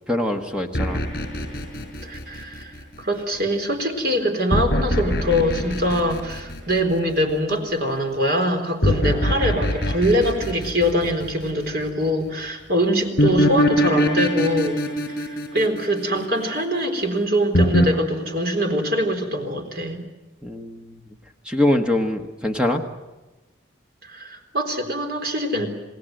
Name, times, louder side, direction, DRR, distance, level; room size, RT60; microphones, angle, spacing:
voice 1, 0.1-1.0 20.4-21.0 21.4-22.8, left 1 dB, 5° right, 3 dB, 1.4 m, -23 dB
sound 1, 0.7-2.9 4.5-7.2 8.8-11.7 13.2-16.6 17.5-17.9, equal, 50° left, 6.0 m, -22 dB
voice 2, 2.0-2.7 3.0-14.8 15.1-20.0 24.0-25.7, equal, 55° right, 4 dB, 4.0 m, -23 dB
28.5 x 19.0 x 7.9 m, 1.1 s
head